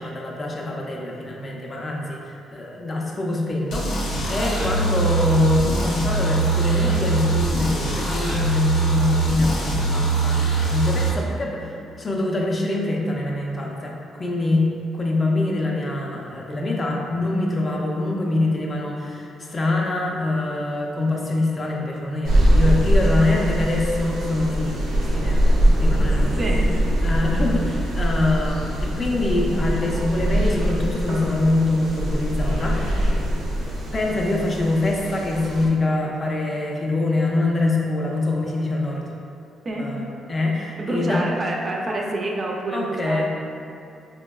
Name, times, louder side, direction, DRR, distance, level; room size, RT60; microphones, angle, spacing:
voice 1, 0.0-14.6 14.9-26.6 27.0-33.1 33.9-39.1 39.8-41.2 41.9-42.1 42.7-43.3, left 2 dB, 30° left, -1 dB, 0.4 m, -24 dB
sound 1, 3.7-11.1, right 3 dB, 90° left, 0.7 m, -22 dB
sound 2, 22.2-35.7, right 1 dB, 75° right, 0.6 m, -22 dB
voice 2, 26.4-26.7 39.6-39.9 40.8-43.3, right 1 dB, 30° right, -1 dB, 0.4 m, -27 dB
4.3 x 2.1 x 2.2 m, 2.6 s
cardioid pair, 115°, 0 cm